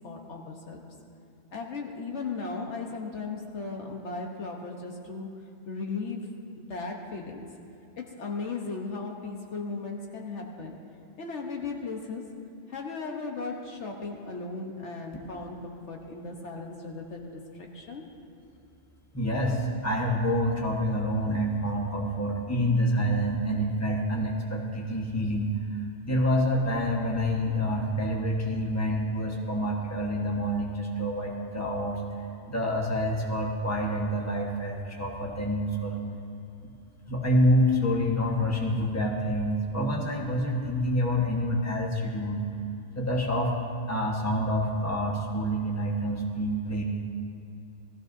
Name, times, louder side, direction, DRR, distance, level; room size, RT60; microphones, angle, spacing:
voice 1, 0.0-0.8 1.5-5.3 5.7-7.4 8.0-10.7 11.2-12.2 12.7-18.1, left 4 dB, 70° left, 1 dB, 1.3 m, -36 dB
voice 2, 19.1-25.5 26.0-32.0 32.5-36.0 37.1-42.4 42.9-43.5 43.9-46.8, equal, 15° left, -1 dB, 1.3 m, -27 dB
17.5 x 14.0 x 2.7 m, 2.6 s
omnidirectional pair, 1.3 m